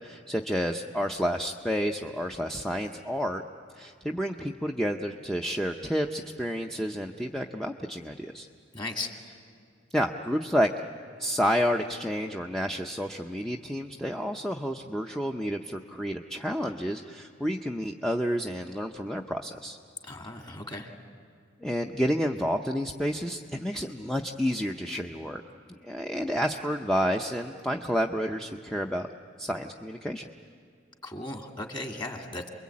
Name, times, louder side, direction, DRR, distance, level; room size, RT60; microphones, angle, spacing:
voice 1, 0.0-3.4 3.7-8.5 9.9-10.7 11.2-19.8 21.6-25.4 25.8-29.1 29.4-30.3, equal, ahead, 3 dB, 0.6 m, -30 dB
voice 2, 8.7-9.1 20.0-20.9 31.0-32.5, left 2 dB, 25° left, 3 dB, 2.1 m, -36 dB
28.0 x 22.0 x 8.5 m, 2.3 s
head